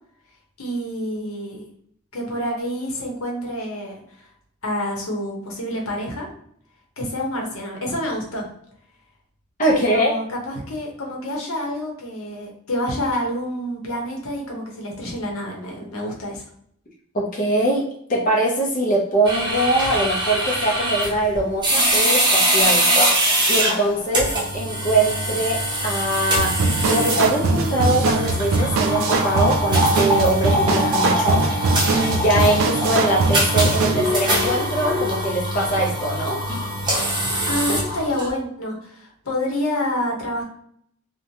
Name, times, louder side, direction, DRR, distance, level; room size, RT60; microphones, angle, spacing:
voice 1, 0.6-1.6 2.1-4.0 4.6-6.3 7.0-8.5 9.7-16.4 37.5-40.4, left 1 dB, 85° left, -1 dB, 0.8 m, -28 dB
voice 2, 9.6-10.1 17.1-17.8 18.1-22.9 23.5-26.5 26.9-31.4 31.9-36.4, right 1 dB, 40° left, -3 dB, 0.6 m, -22 dB
sound 1, 19.2-38.3, equal, 20° right, 0.7 m, -23 dB
sound 2, 26.4-34.0, right 3 dB, 75° right, 0.4 m, -22 dB
3.0 x 2.1 x 2.7 m, 0.67 s
head